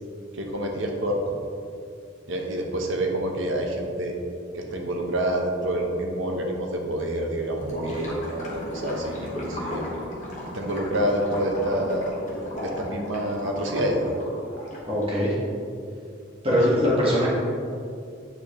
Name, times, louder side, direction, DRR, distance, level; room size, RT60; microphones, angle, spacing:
voice 1, 0.3-1.2 2.3-4.1 4.5-9.9 10.5-12.1 12.6-14.2, right 1 dB, 75° right, 2 dB, 0.8 m, -27 dB
Gurgling / Liquid, 7.5-15.3, left 1 dB, 35° left, 1.1 m, -35 dB
voice 2, 14.9-15.3 16.4-17.3, equal, 30° right, -6 dB, 1.5 m, -21 dB
7.7 x 4.6 x 3.0 m, 2.4 s
head